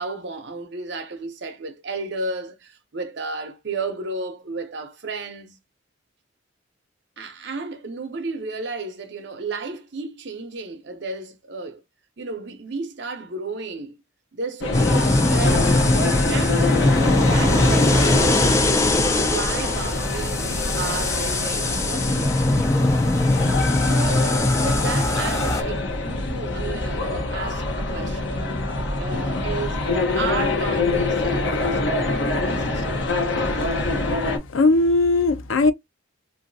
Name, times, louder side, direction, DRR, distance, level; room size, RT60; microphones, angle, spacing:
voice 1, 0.0-5.6 7.2-11.8 12.2-14.0 14.3-15.8 16.3-16.7 17.0-18.6 19.2-22.3 23.7-28.7 29.0-29.8 30.2-33.1, right 3 dB, 55° right, 0.6 m, -33 dB
sound 1, 14.6-34.4, left 2 dB, 60° left, 0.9 m, -25 dB
sound 2, 14.7-25.6, left 2 dB, 15° left, 0.3 m, -21 dB
voice 2, 33.6-35.7, left 3 dB, 80° left, 0.5 m, -21 dB
3.0 x 2.6 x 2.6 m
head